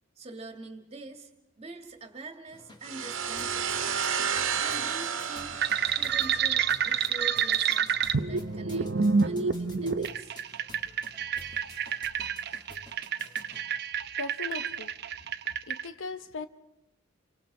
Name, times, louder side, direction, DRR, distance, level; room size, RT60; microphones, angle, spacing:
voice 1, 0.2-1.3 1.6-4.0 4.6-5.6 5.8-8.0 8.3-10.4, right 2 dB, 30° right, 5 dB, 2.3 m, -45 dB
sound 1, 2.5-13.6, left 1 dB, 25° left, 2.5 m, -51 dB
sound 2, 2.8-6.6, right 7 dB, 80° right, 1.7 m, -31 dB
sound 3, 5.6-15.8, right 6 dB, 55° right, 0.8 m, -28 dB
voice 2, 14.2-14.9 15.7-16.5, left 3 dB, 75° left, 10 dB, 1.0 m, -38 dB
28.5 x 25.5 x 4.3 m, 0.88 s
head